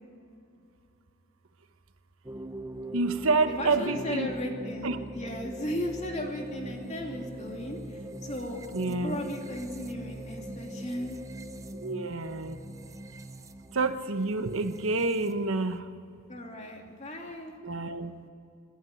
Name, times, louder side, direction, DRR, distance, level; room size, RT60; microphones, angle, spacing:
sound 1, 2.2-15.8, right 1 dB, 15° right, 0.7 m, -42 dB
voice 1, 2.9-4.3 4.8-5.0 8.7-9.3 11.8-12.6 13.7-15.8 17.6-18.1, right 3 dB, 70° right, 9 dB, 1.1 m, -28 dB
voice 2, 3.5-11.2 16.3-17.6, left 1 dB, 30° left, 1 dB, 2.7 m, -36 dB
26.5 x 12.5 x 9.3 m, 2.5 s
head